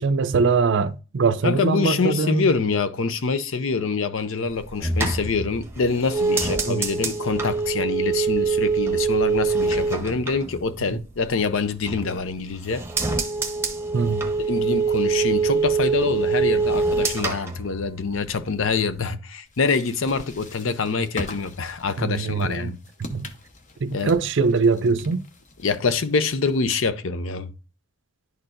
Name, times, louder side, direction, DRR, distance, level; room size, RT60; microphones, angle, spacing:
voice 1, 0.0-2.5 6.7-6.8 13.9-14.3 22.0-22.7 23.1-23.3 23.8-25.2, right 4 dB, 60° right, 0.5 m, -22 dB
voice 2, 1.4-12.8 14.5-22.8 23.9-24.1 25.6-27.5, left 4 dB, 70° left, 0.6 m, -25 dB
sound 1, 4.5-11.3 11.6-12.3 12.6-18.3 18.6-19.1, right 4 dB, 10° right, 0.8 m, -24 dB
sound 2, 19.5-26.8, left 2 dB, 35° left, 0.8 m, -42 dB
11.0 x 4.4 x 2.5 m
head